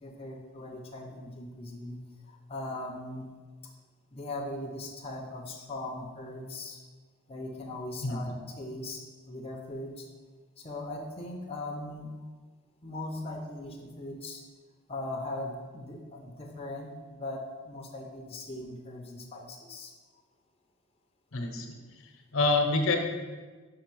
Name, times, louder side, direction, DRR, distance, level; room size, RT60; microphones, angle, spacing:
voice 1, 0.0-2.0 2.3-3.3 4.1-6.8 7.3-10.1 10.6-12.2 12.8-14.4 14.9-19.9, left 2 dB, 25° left, 0 dB, 0.5 m, -39 dB
voice 2, 8.0-8.3 21.3-21.8 22.3-23.0, left 3 dB, 65° left, 3 dB, 0.8 m, -26 dB
5.4 x 4.5 x 4.6 m, 1.4 s
head